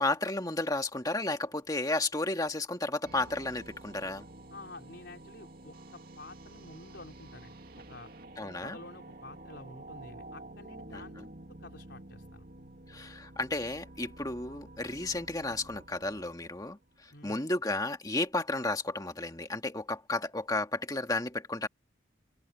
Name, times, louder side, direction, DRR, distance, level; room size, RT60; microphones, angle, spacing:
voice 1, 0.0-4.3 8.4-8.8 10.9-11.0 12.9-21.7, left 2 dB, 20° left, 1.8 m, -33 dB
sound 1, 3.0-17.1, right 2 dB, 50° right, 2.6 m, -50 dB
voice 2, 4.5-7.5 7.9-8.1 8.6-11.3 11.6-12.4 17.1-17.4, left 2 dB, 55° left, 5.1 m, -49 dB
head